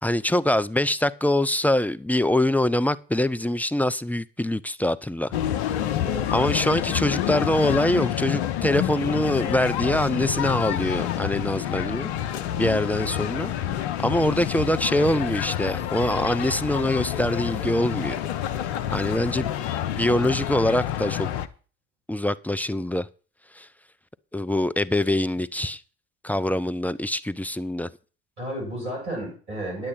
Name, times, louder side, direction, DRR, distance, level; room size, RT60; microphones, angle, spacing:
voice 1, 0.0-5.3 6.3-12.1 12.6-13.5 14.0-18.2 18.9-19.5 19.9-21.3 22.1-23.1 23.6-23.7 24.3-25.8 26.2-27.9, left 1 dB, 5° left, 0.5 m, -24 dB
sound 1, 5.3-21.5, left 11 dB, 75° left, 0.8 m, -28 dB
voice 2, 5.8-6.3 28.4-29.9, right 1 dB, 90° right, 7.5 m, -33 dB
9.7 x 9.0 x 6.0 m
hypercardioid pair, 60°, 33 cm